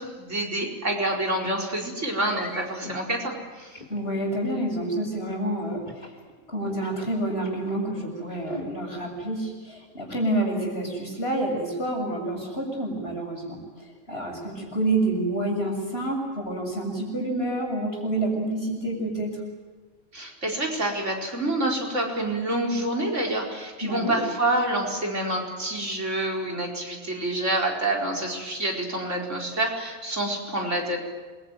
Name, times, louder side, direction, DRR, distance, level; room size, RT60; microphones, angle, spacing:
voice 1, 0.0-3.8 20.1-31.0, right 1 dB, 65° right, 0 dB, 4.9 m, -27 dB
sound 1, 1.4-1.6 2.3-3.0 3.7-4.4 5.9-6.2 6.7-7.8 8.3-8.7, left 2 dB, 35° left, 3.8 m, -41 dB
voice 2, 3.9-5.9 6.5-13.6 14.1-19.4 23.8-24.2, right 1 dB, 50° left, 1 dB, 7.3 m, -28 dB
27.5 x 23.0 x 9.3 m, 1.4 s
omnidirectional pair, 1.3 m